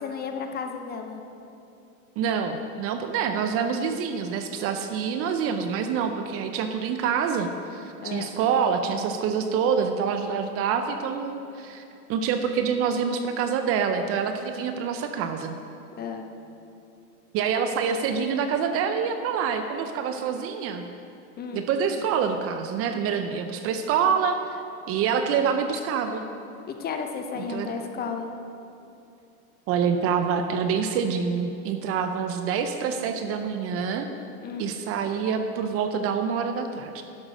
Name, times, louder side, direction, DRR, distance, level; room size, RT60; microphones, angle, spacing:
voice 1, 0.0-1.2 8.0-8.3 16.0-16.3 21.4-21.7 26.7-28.3 34.4-34.8, left 6 dB, 20° left, 5 dB, 0.7 m, -33 dB
voice 2, 2.2-11.8 12.1-15.5 17.3-20.9 21.5-24.6 24.9-26.3 27.4-27.7 29.7-34.1 34.6-37.0, right 6 dB, 30° right, 7 dB, 0.6 m, -26 dB
11.5 x 5.9 x 6.4 m, 2.7 s
hypercardioid pair, 120°, 45 cm